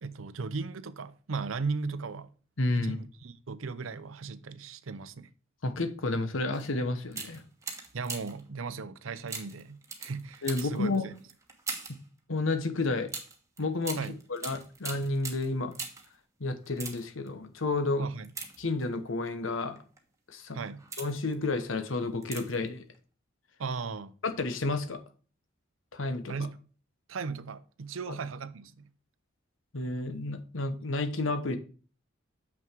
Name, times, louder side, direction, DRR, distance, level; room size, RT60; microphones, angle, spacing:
voice 1, 0.0-2.3 2.8-5.3 7.9-11.1 14.0-14.2 18.0-18.3 20.5-20.8 23.6-24.2 26.3-26.5 27.1-28.8, right 4 dB, 75° right, 0.6 m, -37 dB
voice 2, 2.6-3.0 5.6-7.4 10.4-11.1 12.3-13.1 13.6-14.0 14.3-15.8 16.4-18.0 18.6-19.8 20.3-20.6 21.0-22.8 24.2-25.0 25.9-26.3 29.7-31.6, left 2 dB, 75° left, 1.1 m, -31 dB
sound 1, 6.5-6.7 7.1-8.5 9.3-12.1 13.1-16.2 16.6-17.3 18.2-19.1 19.8-20.0 20.5-21.3 22.2-22.7 22.9-23.0, right 4 dB, 15° right, 1.1 m, -41 dB
7.1 x 6.0 x 4.6 m
head